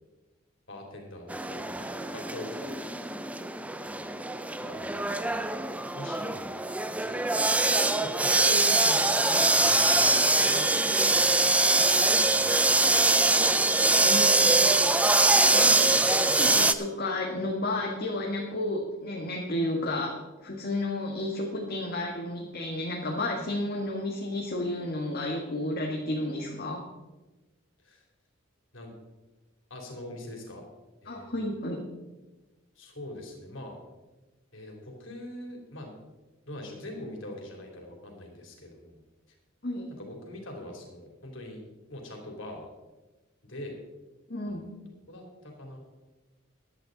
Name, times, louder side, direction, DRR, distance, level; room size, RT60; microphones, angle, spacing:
voice 1, 0.7-2.7 3.8-4.1 4.6-5.0 5.3-5.6 5.9-6.6 7.0-7.6 8.0-10.1 10.4-13.5 27.8-28.0 28.7-28.9 29.7-30.6 31.0-31.3 32.7-33.7 34.5-35.9 36.4-39.0 40.0-41.6 41.9-42.7 43.4-43.8 44.5-44.8 45.1-45.8, left 1 dB, 65° left, 1 dB, 3.3 m, -43 dB
sound 1, 1.3-16.7, right 2 dB, 5° right, 0.4 m, -23 dB
voice 2, 14.0-14.3 15.5-15.8 16.4-26.8 31.1-31.8 39.6-39.9 44.3-44.6, left 1 dB, 45° left, -1 dB, 1.6 m, -32 dB
15.0 x 11.0 x 4.0 m, 1.1 s
head